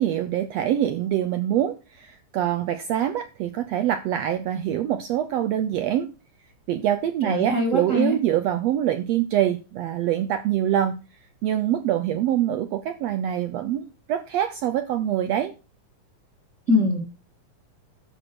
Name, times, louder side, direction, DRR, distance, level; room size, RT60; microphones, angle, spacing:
voice 1, 0.0-6.1 6.7-11.0 11.4-15.5, right 11 dB, 75° right, 10 dB, 1.5 m, -24 dB
voice 2, 7.2-8.1 16.7-17.0, left 2 dB, 25° right, 2 dB, 2.5 m, -22 dB
13.0 x 4.8 x 6.0 m, 0.32 s
omnidirectional pair, 3.6 m